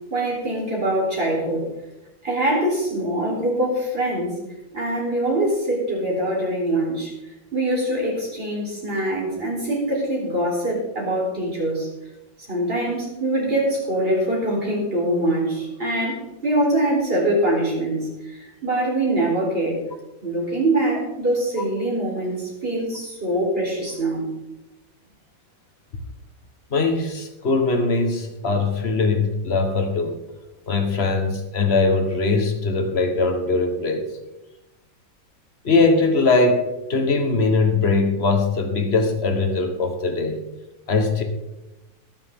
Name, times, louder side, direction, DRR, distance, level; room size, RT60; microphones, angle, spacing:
voice 1, 0.1-1.7 2.2-4.4 4.7-7.1 7.5-11.9 12.5-19.8 20.2-24.2, right 1 dB, 30° right, 4.3 m, -23 dB
voice 2, 26.7-30.2 30.7-34.0 35.6-40.4 40.9-41.2, left 3 dB, 35° left, 1.5 m, -21 dB
21.0 x 7.2 x 3.8 m
omnidirectional pair, 2.1 m